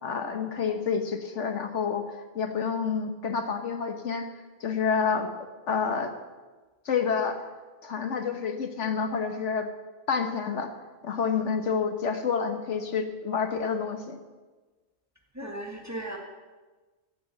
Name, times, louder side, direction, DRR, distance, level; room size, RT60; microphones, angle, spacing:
voice 1, 0.0-4.3 4.6-5.3 5.7-6.1 6.8-7.4 7.8-9.7 10.1-10.7 11.0-14.2, left 6 dB, 70° left, 6 dB, 1.4 m, -28 dB
voice 2, 15.3-16.2, right 1 dB, 15° right, 1 dB, 1.6 m, -36 dB
15.5 x 6.8 x 8.1 m, 1.3 s
omnidirectional pair, 1.3 m